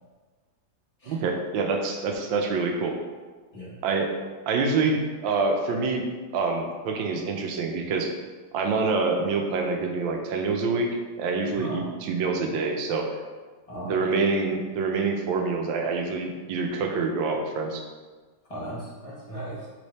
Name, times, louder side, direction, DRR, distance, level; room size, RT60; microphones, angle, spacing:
voice 1, 1.1-3.0 3.8-4.1 4.5-6.0 6.3-8.1 8.5-13.2 13.8-17.8, right 4 dB, 80° right, 3 dB, 1.4 m, -26 dB
voice 2, 11.5-11.8 13.7-14.0 18.5-19.7, right 1 dB, 25° left, -6 dB, 0.9 m, -37 dB
3.8 x 3.3 x 4.0 m, 1.3 s
omnidirectional pair, 2.1 m